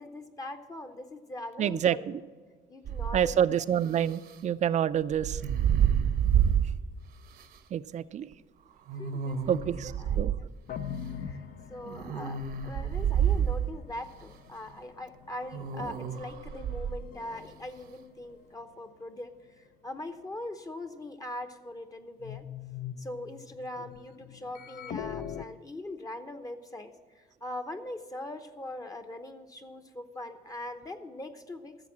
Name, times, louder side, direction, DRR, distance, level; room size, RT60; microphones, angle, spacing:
voice 1, 0.0-2.2 2.7-3.5 8.9-9.6 10.0-10.5 11.0-11.4 11.7-22.4 23.0-31.8, left 1 dB, 20° left, 6 dB, 0.8 m, -41 dB
voice 2, 1.6-2.2 3.1-5.4 7.7-8.3 9.5-10.3, right 9 dB, 45° right, 15 dB, 0.5 m, -28 dB
sound 1, 2.8-3.4 5.1-6.8 7.4-7.5 8.9-10.4 11.9-13.8 15.5-17.0, right 9 dB, 65° right, 0.9 m, -28 dB
sound 2, 10.7-18.3 18.9-19.0 19.9-20.0 22.2-25.5, left 8 dB, 60° left, 0.7 m, -43 dB
14.0 x 6.9 x 7.3 m, 1.5 s
cardioid pair, 110°, 17 cm